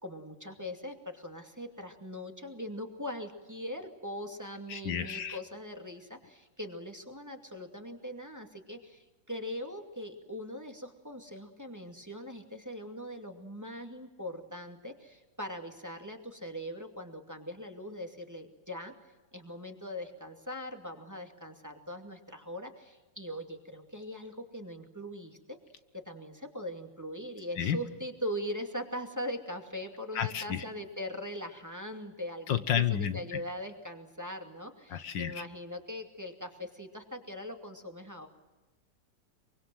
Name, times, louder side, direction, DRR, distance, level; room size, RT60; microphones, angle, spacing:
voice 1, 0.0-18.9 19.3-25.6 26.1-38.3, equal, 10° right, 4 dB, 2.3 m, -41 dB
voice 2, 4.7-5.4 27.6-27.8 30.1-30.6 32.5-33.4 34.9-35.4, left 9 dB, 75° left, 11 dB, 1.8 m, -31 dB
24.5 x 24.0 x 7.7 m, 1.1 s
omnidirectional pair, 2.0 m